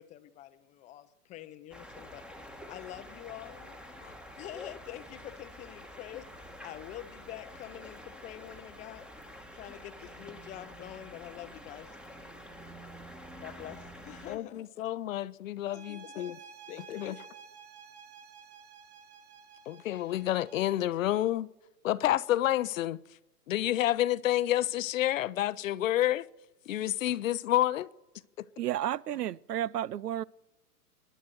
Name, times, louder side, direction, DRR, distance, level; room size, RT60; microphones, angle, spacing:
voice 1, 0.0-2.2 2.7-3.8 4.0-9.1 9.5-12.0 13.4-14.7 15.7-17.2, left 13 dB, 15° left, 0.6 m, -46 dB
sound 1, 1.7-14.4, equal, ahead, 1.2 m, -48 dB
voice 2, 14.3-16.4 16.9-17.1 19.7-21.5 21.8-23.0 23.5-26.3 26.7-27.9 28.4-28.5, left 13 dB, 55° left, 0.7 m, -29 dB
sound 2, 15.6-20.9, right 6 dB, 65° right, 3.5 m, -52 dB
voice 3, 28.6-30.2, right 12 dB, 85° right, 0.6 m, -32 dB
26.0 x 11.0 x 4.5 m
hypercardioid pair, 120°, 46 cm